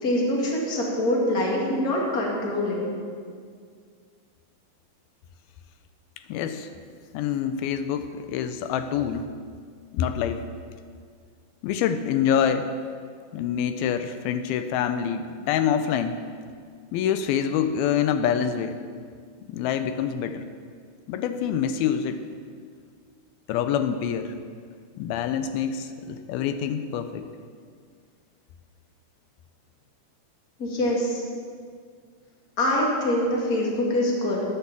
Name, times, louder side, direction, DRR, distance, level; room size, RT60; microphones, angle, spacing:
voice 1, 0.0-2.8 30.6-31.2 32.6-34.4, left 1 dB, 30° left, -3 dB, 2.1 m, -24 dB
voice 2, 6.3-6.7 7.1-9.3 9.9-10.5 11.6-12.7 13.3-16.2 16.9-18.8 19.5-20.5 21.1-22.2 23.5-24.3 25.0-27.3, left 8 dB, 85° left, 9 dB, 2.5 m, -26 dB
11.0 x 9.9 x 7.3 m, 2.1 s
omnidirectional pair, 4.3 m